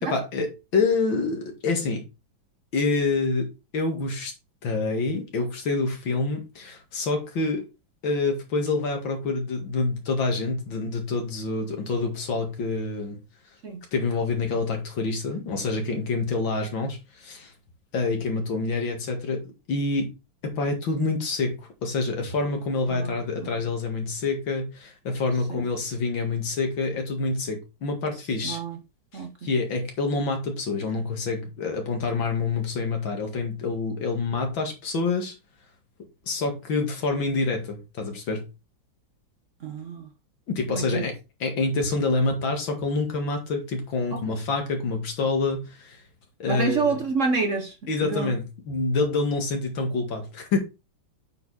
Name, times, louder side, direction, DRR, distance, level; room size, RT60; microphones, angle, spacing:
voice 1, 0.0-2.1 2.7-4.3 4.6-7.6 8.0-13.2 13.9-17.5 17.9-19.4 19.7-20.1 20.4-28.6 29.1-35.3 36.3-38.4 40.5-41.1 41.4-46.0 46.4-47.0 47.9-50.6, left 3 dB, 75° left, 2.7 m, -27 dB
voice 2, 22.9-23.5 25.5-25.6 28.4-28.8 29.1-29.5 39.6-40.1 40.7-41.0 44.1-44.4 46.5-47.7 48.0-48.3, right 4 dB, 50° right, 1.0 m, -28 dB
8.4 x 4.5 x 4.1 m
omnidirectional pair, 2.1 m